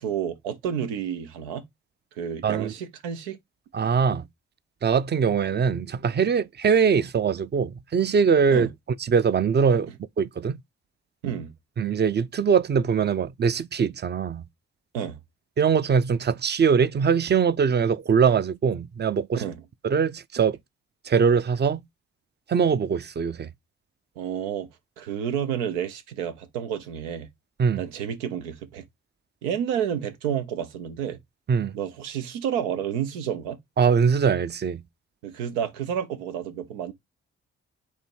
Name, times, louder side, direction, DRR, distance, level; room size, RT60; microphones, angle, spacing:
voice 1, 0.0-1.6 2.2-3.4 8.5-8.7 11.2-11.5 14.9-15.2 19.3-19.6 24.2-24.7 25.0-27.3 27.8-28.8 29.4-31.2 31.7-33.6 35.2-36.9, right 8 dB, 90° right, 0.6 m, -30 dB
voice 2, 2.4-2.7 3.7-4.2 4.8-8.7 9.0-9.9 10.2-10.6 11.8-14.4 15.6-19.4 19.8-20.6 21.0-21.8 22.5-23.5 27.6-27.8 31.5-31.7 33.8-34.8, right 6 dB, 30° right, 0.5 m, -22 dB
4.5 x 2.7 x 4.4 m
hypercardioid pair, 40°, 33 cm